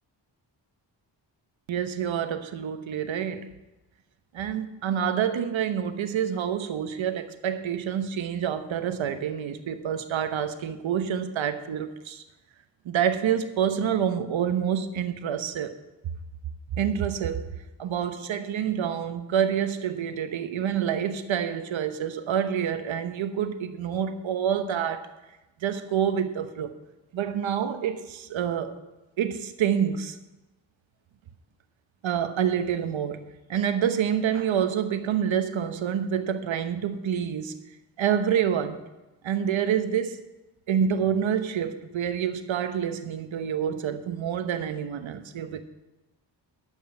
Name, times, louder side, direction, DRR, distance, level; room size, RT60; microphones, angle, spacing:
voice 1, 1.7-3.5 4.3-12.2 12.8-15.7 16.8-17.4 17.8-25.1 25.6-26.8 27.1-28.8 29.2-30.2 32.0-33.2 33.5-37.6 38.0-38.8 39.2-40.2 40.7-45.6, right 8 dB, 80° right, 9 dB, 1.0 m, -27 dB
12.0 x 5.5 x 7.7 m, 1.0 s
cardioid pair, 55°, 46 cm